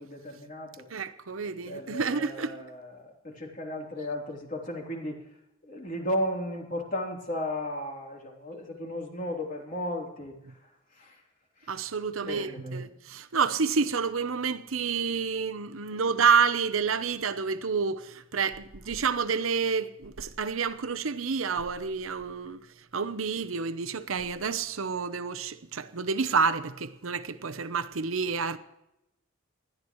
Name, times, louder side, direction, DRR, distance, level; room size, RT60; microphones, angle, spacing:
voice 1, 0.0-0.8 1.6-5.2 5.6-10.3 10.6-11.2 11.6-11.7 12.2-12.8 15.9-16.0, left 1 dB, 40° left, 3.5 m, -35 dB
voice 2, 0.9-2.5 10.5-10.6 11.7-22.6 22.9-28.6, right 5 dB, 80° right, 0.9 m, -29 dB
20.5 x 13.5 x 3.2 m
head